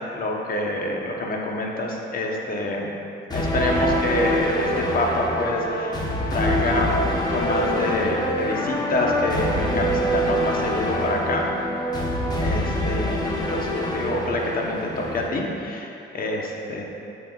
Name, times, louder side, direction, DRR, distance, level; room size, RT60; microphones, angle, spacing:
voice 1, 0.0-2.9 3.3-6.0 6.3-7.0 7.3-11.5 12.4-16.8, left 2 dB, 45° left, -1 dB, 1.1 m, -26 dB
sound 1, 3.3-15.3, equal, 20° left, 1.0 m, -25 dB
9.4 x 6.5 x 2.4 m, 2.7 s
cardioid pair, 90°, 20 cm